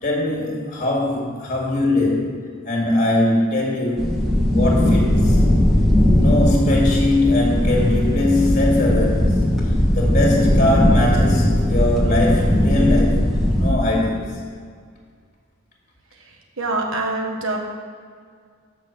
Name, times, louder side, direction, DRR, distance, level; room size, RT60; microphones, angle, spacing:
voice 1, 0.0-2.4 2.6-4.2 4.5-5.4 6.1-13.2 13.6-14.4, left 1 dB, 35° left, -2 dB, 2.1 m, -21 dB
sound 1, 4.0-13.7, left 1 dB, ahead, 1.3 m, -18 dB
voice 2, 16.2-17.6, right 2 dB, 65° right, 1 dB, 1.2 m, -25 dB
7.5 x 6.0 x 6.5 m, 2.1 s
head